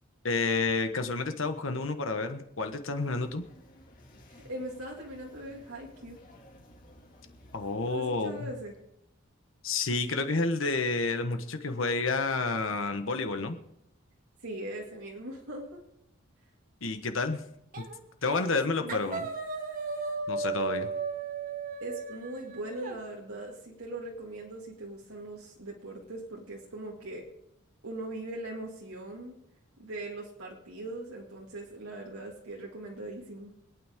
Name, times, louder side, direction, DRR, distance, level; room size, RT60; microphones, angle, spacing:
voice 1, 0.2-3.4 7.5-8.5 9.6-13.6 16.8-17.4 17.8-17.9 18.2-19.3 20.3-20.9, left 3 dB, 65° left, 7 dB, 1.3 m, -30 dB
sound 1, 3.0-9.0, left 1 dB, 40° left, 2.3 m, -56 dB
voice 2, 4.3-6.2 7.9-8.7 14.4-15.8 18.5-19.3 21.8-27.2 27.8-29.3 29.8-33.5, right 1 dB, 90° right, -3 dB, 2.2 m, -40 dB
sound 2, 17.7-18.0 18.3-18.6 18.9-23.0, right 4 dB, 40° right, 1.6 m, -35 dB
25.5 x 9.2 x 3.7 m, 0.80 s
head